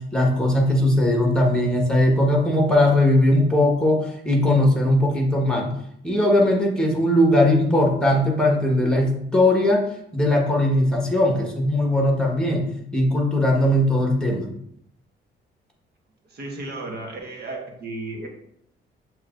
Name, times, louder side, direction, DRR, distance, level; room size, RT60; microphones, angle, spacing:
voice 1, 0.1-5.7 6.0-9.8 10.1-12.6 12.9-14.5, left 1 dB, 5° left, 0 dB, 1.3 m, -19 dB
voice 2, 16.3-18.3, right 2 dB, 55° right, 1 dB, 1.2 m, -34 dB
7.1 x 3.0 x 2.5 m, 0.70 s
cardioid pair, 90°, 20 cm